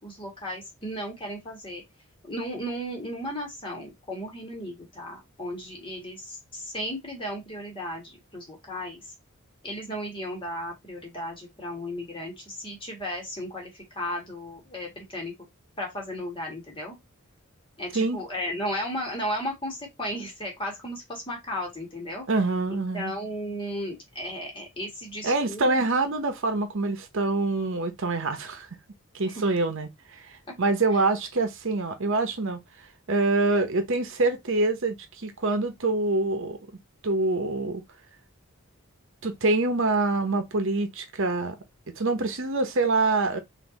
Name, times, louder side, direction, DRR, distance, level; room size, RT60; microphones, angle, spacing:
voice 1, 0.0-1.8 2.2-9.1 9.6-15.3 15.8-16.9 17.8-22.3 22.7-25.8 29.2-29.3 30.5-30.6 30.9-31.0, equal, 25° left, 1.8 m, -35 dB
voice 2, 22.3-23.1 25.2-28.7 29.1-32.6 33.1-36.6 37.0-37.8 39.2-41.6 42.0-43.4, right 3 dB, 60° right, 0.9 m, -25 dB
3.9 x 2.7 x 3.9 m
head